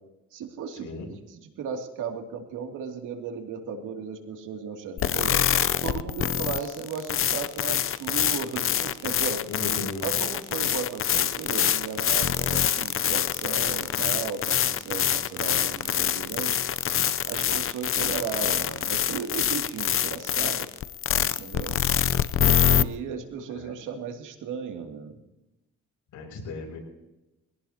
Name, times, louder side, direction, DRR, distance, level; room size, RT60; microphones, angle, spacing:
voice 1, 0.3-5.4 5.8-9.4 10.0-16.6 17.2-20.7 21.2-21.7 22.5-25.2, right 6 dB, 90° right, 3 dB, 2.7 m, -35 dB
sound 1, 5.0-22.8, left 9 dB, 45° left, 0.7 m, -25 dB
voice 2, 9.5-10.0 23.5-23.8 26.1-26.8, left 3 dB, 85° left, 1 dB, 6.3 m, -36 dB
22.5 x 17.0 x 2.9 m, 0.94 s
cardioid pair, 90°, 30 cm